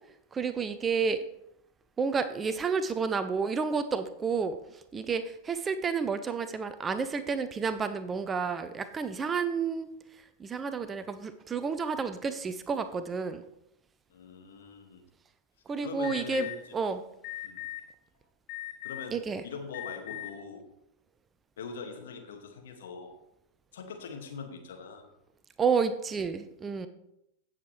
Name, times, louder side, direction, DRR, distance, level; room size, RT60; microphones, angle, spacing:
voice 1, 0.3-1.2 2.0-9.9 10.2-13.4 15.7-17.0 19.1-19.4 25.6-26.9, right 5 dB, 20° right, 11 dB, 0.7 m, -30 dB
voice 2, 14.1-15.0 15.8-16.6 17.4-17.6 18.8-19.2 19.4-20.6 21.6-23.2 23.7-25.0, left 4 dB, 60° left, 3 dB, 2.1 m, -42 dB
Alarm, 16.0-16.5 17.2-17.8 18.5-19.1 19.7-20.3, left 14 dB, 40° left, 2.2 m, -39 dB
16.5 x 7.3 x 3.4 m, 0.81 s
figure-of-eight pair, 90°, 0 cm